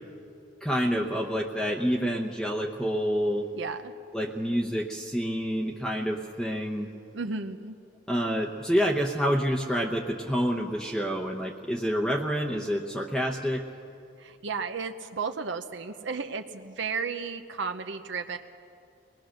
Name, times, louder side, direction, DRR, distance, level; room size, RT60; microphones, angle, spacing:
voice 1, 0.6-3.5 4.1-6.9 8.1-13.7, equal, 5° left, 0 dB, 0.8 m, -28 dB
voice 2, 3.5-3.9 7.1-7.8 14.2-18.4, right 5 dB, 70° right, 6 dB, 0.8 m, -33 dB
23.5 x 20.0 x 6.5 m, 2.5 s
head